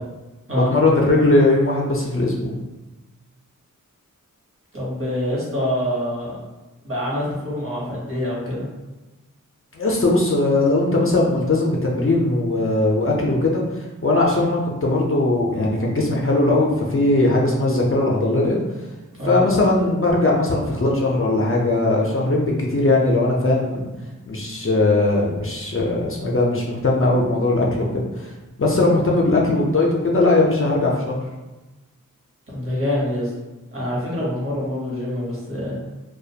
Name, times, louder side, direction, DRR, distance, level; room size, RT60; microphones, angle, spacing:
voice 1, 0.5-2.6 9.7-18.6 19.3-23.9 24.3-28.3 28.6-31.2, left 2 dB, 40° left, -2 dB, 0.4 m, -19 dB
voice 2, 4.7-6.4 6.8-8.7 19.2-19.4 32.5-33.3 33.7-35.8, left 1 dB, 40° right, -5 dB, 0.9 m, -25 dB
2.3 x 2.1 x 2.7 m, 1.1 s
wide cardioid pair, 75°, 32 cm